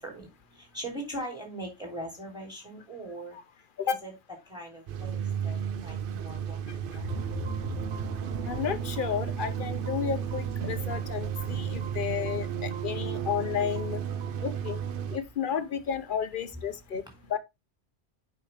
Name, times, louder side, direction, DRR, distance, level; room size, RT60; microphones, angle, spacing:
voice 1, 0.0-3.4 3.8-4.1 4.5-7.1 14.1-14.4 16.5-16.6 17.1-17.3, right 1 dB, 5° right, 3.0 m, -41 dB
sound 1, 4.9-15.2, right 8 dB, 60° right, 0.7 m, -34 dB
sound 2, 6.8-9.7, left 3 dB, 30° right, 2.0 m, -41 dB
sound 3, 7.1-15.1, right 7 dB, 85° right, 1.3 m, -39 dB
voice 2, 8.4-14.0 14.4-14.8 15.1-17.0 17.3-17.4, left 8 dB, 55° left, 0.7 m, -32 dB
8.5 x 5.2 x 3.3 m
omnidirectional pair, 1.1 m